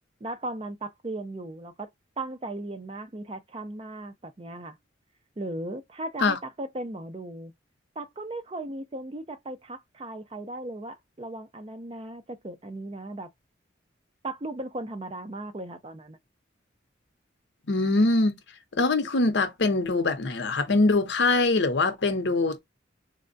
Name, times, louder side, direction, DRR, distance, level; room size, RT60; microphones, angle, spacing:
voice 1, 0.2-1.9 2.2-4.8 5.4-7.5 8.0-13.3 14.2-16.2, right 2 dB, 30° right, 0.5 m, -37 dB
voice 2, 17.7-18.3 18.7-22.6, left 3 dB, 70° left, 0.7 m, -23 dB
3.5 x 2.1 x 2.5 m
head